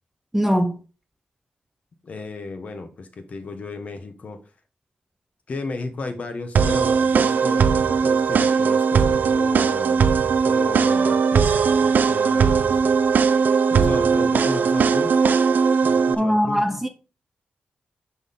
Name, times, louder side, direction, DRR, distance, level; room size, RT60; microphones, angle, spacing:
voice 1, 0.3-0.8 16.2-16.9, equal, 5° right, 0.5 m, -21 dB
voice 2, 2.0-4.4 5.5-10.0 10.4-12.8 13.7-15.2 15.8-16.7, left 3 dB, 45° left, 1.0 m, -34 dB
sound 1, 6.6-16.2, right 5 dB, 60° right, 0.5 m, -19 dB
5.9 x 5.8 x 3.5 m
wide cardioid pair, 170°, 3 cm